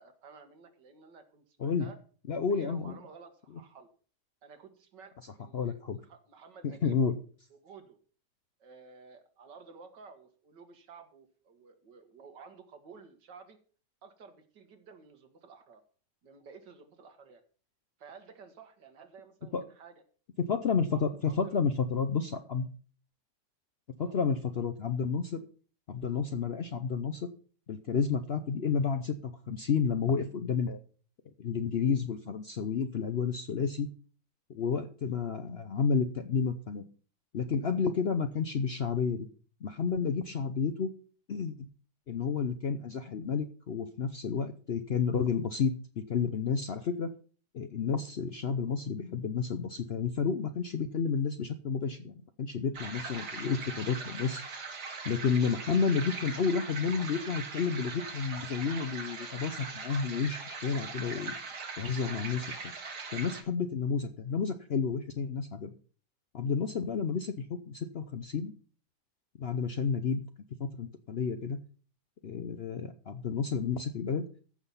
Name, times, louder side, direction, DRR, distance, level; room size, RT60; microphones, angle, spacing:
voice 1, 0.0-2.0 2.5-3.9 4.4-5.1 5.4-7.0 7.5-8.0 8.6-13.6 14.0-15.8 16.2-17.4 18.0-19.9 20.9-21.6 24.0-24.2 52.9-53.0, right 5 dB, 90° right, 7 dB, 2.2 m, -53 dB
voice 2, 2.3-2.9 5.5-6.0 6.6-7.1 19.5-19.6 20.4-22.7 24.0-25.4 25.9-27.3 27.7-30.8 31.4-33.9 34.5-36.8 37.3-39.3 39.6-40.9 41.3-41.7 42.1-47.1 47.5-54.4 55.0-61.3 61.8-62.5 63.1-65.7 66.3-68.5 69.4-70.2 70.6-71.6 72.2-74.2, left 6 dB, 60° left, 9 dB, 0.6 m, -31 dB
sound 1, 52.7-63.4, right 4 dB, 75° right, 2.3 m, -41 dB
14.5 x 6.1 x 5.5 m, 0.41 s
omnidirectional pair, 1.8 m